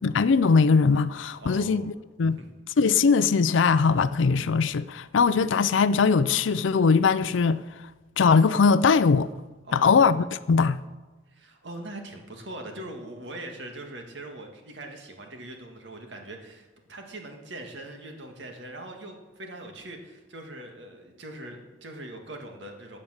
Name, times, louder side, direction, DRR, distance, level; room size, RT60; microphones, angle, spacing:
voice 1, 0.0-1.8 2.2-2.4 2.8-7.6 8.2-9.3 9.7-10.8, left 5 dB, 85° left, 0.5 m, -21 dB
voice 2, 1.4-1.9 2.3-2.5 9.6-10.1 11.3-23.0, right 1 dB, 70° right, 2.1 m, -41 dB
16.0 x 8.6 x 6.5 m
head